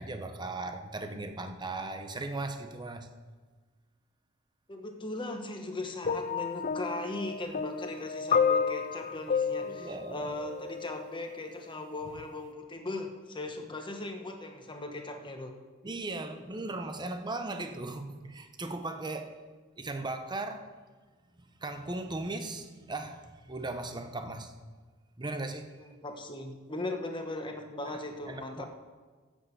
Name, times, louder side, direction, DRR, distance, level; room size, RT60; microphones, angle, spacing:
voice 1, 0.0-3.1 9.6-10.3 15.8-19.4 19.8-20.7 21.4-24.6 25.2-25.8 27.8-28.0 28.3-28.7, right 2 dB, 20° right, 0.8 m, -38 dB
voice 2, 4.7-15.6 25.8-28.7, left 2 dB, 25° left, 1.2 m, -38 dB
sound 1, 6.0-11.2 12.1-12.2, left 6 dB, 40° left, 0.5 m, -31 dB
13.0 x 6.3 x 8.1 m
head